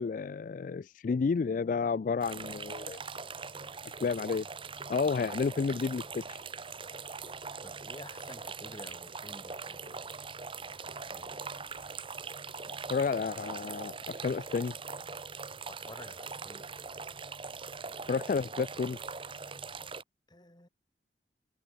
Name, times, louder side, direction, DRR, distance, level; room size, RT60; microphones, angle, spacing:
voice 1, 0.0-3.0 4.0-4.5 4.9-6.4 12.9-14.7 18.1-19.0, left 5 dB, 50° left, 0.3 m, -31 dB
sound 1, 2.2-20.0, right 4 dB, 30° right, 1.3 m, -42 dB
voice 2, 7.6-10.2 10.8-11.4 12.6-12.9 15.7-16.7 20.3-20.7, left 1 dB, 25° left, 2.8 m, -52 dB
head